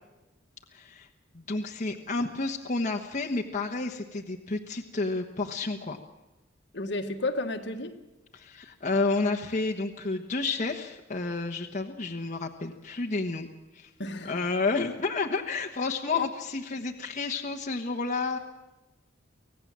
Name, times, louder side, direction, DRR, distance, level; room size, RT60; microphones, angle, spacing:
voice 1, 0.7-1.1 1.3-6.0 8.3-13.5 13.7-13.9 14.2-18.4, left 3 dB, 40° left, 1.2 m, -30 dB
voice 2, 6.7-8.0 14.0-14.4 16.1-16.3, left 2 dB, 60° left, 1.6 m, -32 dB
25.0 x 17.5 x 7.5 m
head